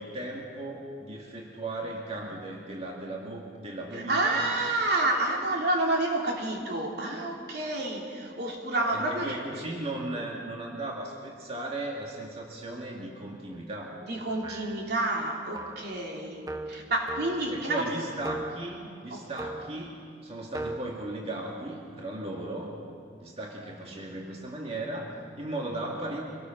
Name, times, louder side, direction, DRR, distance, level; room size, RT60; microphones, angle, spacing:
voice 1, 0.0-4.5 8.9-14.0 17.5-19.9 20.2-22.8 23.2-26.2, right 1 dB, 35° right, -1 dB, 2.2 m, -36 dB
voice 2, 3.9-9.4 14.1-17.9 19.1-19.3, right 2 dB, 65° right, 0 dB, 3.0 m, -29 dB
sound 1, 14.4-14.9 15.5-15.9 16.5-17.6 18.2-18.7 19.4-19.9 20.5-20.8, right 2 dB, 20° right, 0.8 m, -38 dB
25.5 x 18.5 x 6.2 m, 2.3 s
head